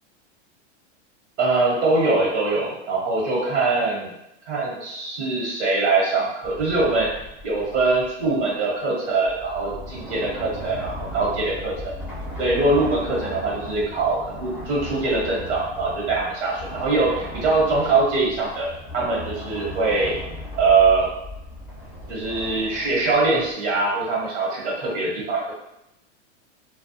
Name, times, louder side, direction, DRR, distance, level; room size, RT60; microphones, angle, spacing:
voice 1, 1.4-4.1 4.5-7.1 7.4-11.7 12.4-20.1 20.6-21.1 22.1-25.5, right 3 dB, 75° right, -4 dB, 1.1 m, -22 dB
sound 1, 6.4-8.4 9.2-23.5, left 1 dB, 5° right, 0.5 m, -37 dB
2.2 x 2.2 x 2.7 m, 0.87 s
supercardioid pair, 135°, 36 cm